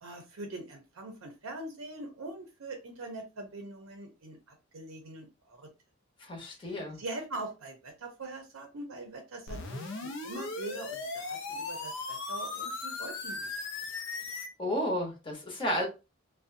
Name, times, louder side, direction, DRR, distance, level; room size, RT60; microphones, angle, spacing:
voice 1, 0.0-5.7 6.6-13.5, right 2 dB, 75° right, 0.6 m, -43 dB
voice 2, 6.2-7.0 14.6-15.9, equal, 25° left, 0.9 m, -32 dB
sound 1, 9.5-14.5, left 3 dB, 65° left, 0.5 m, -37 dB
2.6 x 2.1 x 2.5 m
head